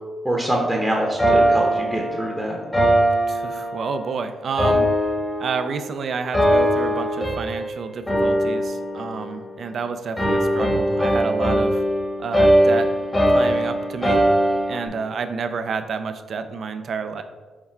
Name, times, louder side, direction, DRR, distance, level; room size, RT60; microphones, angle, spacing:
voice 1, 0.2-2.6, right 1 dB, 10° right, -1 dB, 0.8 m, -24 dB
sound 1, 1.2-4.1 4.6-5.9 6.3-7.7 8.1-9.8 10.2-14.9, equal, 15° left, 1.1 m, -21 dB
voice 2, 3.3-4.9 5.4-11.8 12.2-12.9 13.3-14.2 14.7-17.2, right 5 dB, 60° right, 9 dB, 0.4 m, -29 dB
5.7 x 2.1 x 4.3 m, 1.3 s
cardioid pair, 65°, 0 cm